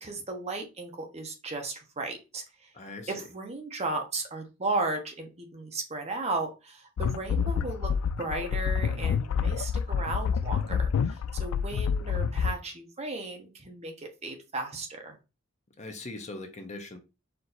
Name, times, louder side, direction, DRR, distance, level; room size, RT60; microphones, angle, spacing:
voice 1, 0.0-2.7 3.1-7.9 8.2-15.2, right 2 dB, 30° right, 3 dB, 0.9 m, -35 dB
voice 2, 2.7-3.2 15.8-17.0, left 2 dB, 35° left, 5 dB, 0.8 m, -41 dB
sound 1, 7.0-12.5, left 6 dB, 80° left, 0.3 m, -28 dB
4.5 x 2.7 x 4.0 m, 0.28 s
head